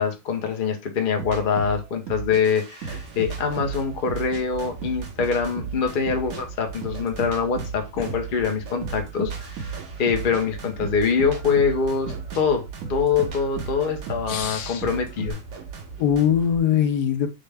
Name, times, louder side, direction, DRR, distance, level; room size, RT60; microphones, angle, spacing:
voice 1, 0.0-9.7 10.0-15.4, left 6 dB, 45° left, 0.8 m, -24 dB
sound 1, 1.2-4.4 4.8-8.4 8.8-15.3, right 5 dB, 75° right, 1.5 m, -35 dB
sound 2, 2.4-16.6, right 5 dB, 55° right, 1.1 m, -39 dB
voice 2, 14.3-14.8 16.0-17.3, left 9 dB, 90° left, 1.2 m, -22 dB
6.4 x 2.2 x 3.4 m
omnidirectional pair, 1.6 m